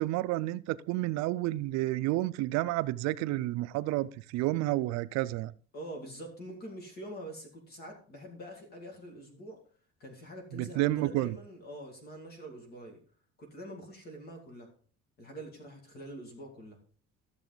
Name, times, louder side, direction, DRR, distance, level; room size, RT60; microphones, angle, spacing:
voice 1, 0.0-5.5 10.5-11.4, right 17 dB, 65° right, 15 dB, 0.5 m, -30 dB
voice 2, 5.7-9.6 10.0-13.0 13.4-14.7 15.2-16.8, right 1 dB, 30° left, 3 dB, 2.2 m, -45 dB
13.0 x 6.9 x 3.9 m, 0.43 s
cardioid pair, 180°, 30 cm